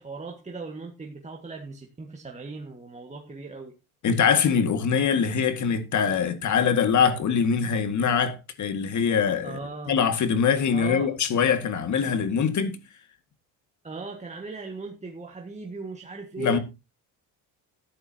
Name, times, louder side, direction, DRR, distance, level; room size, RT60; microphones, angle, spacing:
voice 1, 0.0-3.7 9.4-10.0 10.7-11.1 13.8-16.6, right 3 dB, 20° right, 1.7 m, -38 dB
voice 2, 4.0-9.6 9.9-12.8 16.4-16.6, left 6 dB, 50° left, 1.9 m, -23 dB
14.0 x 11.0 x 2.8 m
cardioid pair, 95°, 38 cm